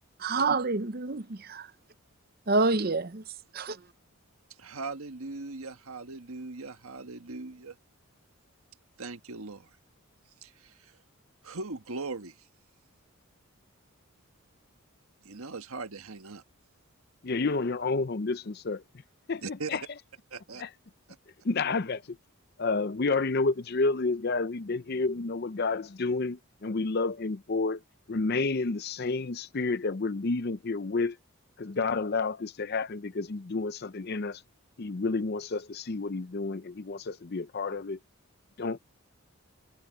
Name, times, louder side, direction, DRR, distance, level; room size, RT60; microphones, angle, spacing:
voice 1, 0.2-1.7 2.5-3.2 3.6-3.7, right 3 dB, 45° right, 0.7 m, -27 dB
voice 2, 4.6-7.7 9.0-9.7 10.4-11.0 11.4-12.3 15.2-16.4 19.4-19.8 20.3-20.6, right 3 dB, 75° right, 1.4 m, -39 dB
voice 3, 17.2-18.8 19.3-19.4 19.7-19.8 20.6-20.7 21.4-22.0 22.6-27.8 28.1-31.2 31.6-34.4 34.8-38.0 38.6-38.8, left 3 dB, 45° left, 0.5 m, -30 dB
head